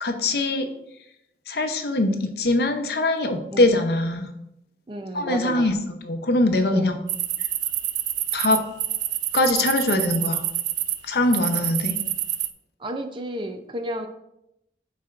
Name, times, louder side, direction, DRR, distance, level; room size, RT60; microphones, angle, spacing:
voice 1, 0.0-0.7 1.5-4.3 5.1-7.0 8.3-8.6 9.3-10.4 11.0-12.0, left 2 dB, 65° left, 6 dB, 0.7 m, -22 dB
voice 2, 4.9-5.8 6.7-7.0 12.8-14.1, right 1 dB, 25° right, 6 dB, 0.5 m, -32 dB
sound 1, 7.1-11.0 11.3-12.5, right 13 dB, 85° right, 0.4 m, -27 dB
10.5 x 4.2 x 2.5 m, 0.82 s
head